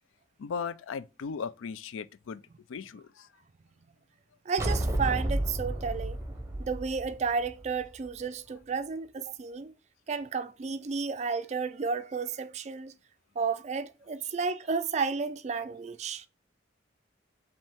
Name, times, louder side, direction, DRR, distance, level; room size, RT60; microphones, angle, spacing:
voice 1, 0.4-2.4 2.7-3.3, left 5 dB, 85° left, 0.4 m, -37 dB
voice 2, 4.5-6.2 6.6-9.7 10.1-13.0 13.4-16.3, right 5 dB, 35° right, 0.3 m, -32 dB
sound 1, 4.6-8.0, right 1 dB, 15° right, 0.7 m, -31 dB
5.3 x 2.8 x 3.4 m
head